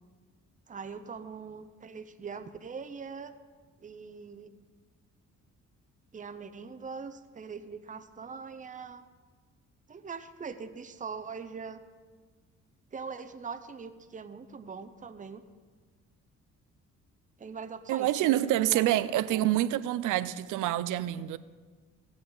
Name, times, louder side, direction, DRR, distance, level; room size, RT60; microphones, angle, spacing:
voice 1, 0.7-3.3 3.8-4.6 6.1-9.0 9.9-11.8 12.9-15.4 17.4-19.5, right 5 dB, 25° right, 0.7 m, -42 dB
voice 2, 17.9-21.4, right 14 dB, 85° right, 0.5 m, -27 dB
17.0 x 8.4 x 3.9 m
cardioid pair, 90°, 30 cm